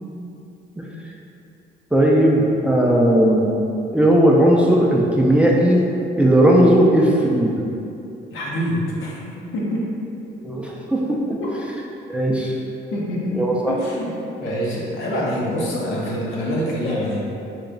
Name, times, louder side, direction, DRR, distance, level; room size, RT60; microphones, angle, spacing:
voice 1, 1.9-3.5 3.9-5.8 6.2-7.5 10.4-11.2 12.1-12.5 13.3-13.8, right 1 dB, 5° right, -3 dB, 0.4 m, -16 dB
voice 2, 8.3-9.9 11.4-11.6 12.9-13.4 13.7-14.1 14.4-17.2, equal, 80° left, -4 dB, 0.8 m, -25 dB
3.0 x 2.2 x 3.7 m, 2.7 s
cardioid pair, 90°, 20 cm